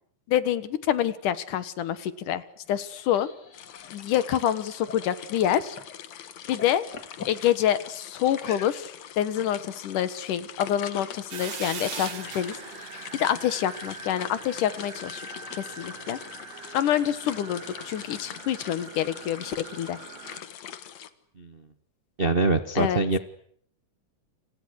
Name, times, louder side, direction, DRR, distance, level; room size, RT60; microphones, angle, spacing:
voice 1, 0.3-2.4 2.7-3.3 3.9-5.8 6.5-6.8 7.3-12.5 12.9-15.3 15.6-16.2 16.7-20.0 22.8-23.0, left 10 dB, 80° left, 14 dB, 3.0 m, -27 dB
sound 1, 2.6-6.0 6.3-7.4 8.3-9.1, left 6 dB, 35° left, 2.3 m, -44 dB
sound 2, 3.5-21.1, left 10 dB, 60° left, 2.4 m, -43 dB
sound 3, 11.3-20.4, right 6 dB, 55° right, 2.8 m, -42 dB
voice 2, 22.2-23.2, right 3 dB, 80° right, 8 dB, 0.5 m, -24 dB
30.0 x 28.0 x 6.5 m, 0.65 s
omnidirectional pair, 3.7 m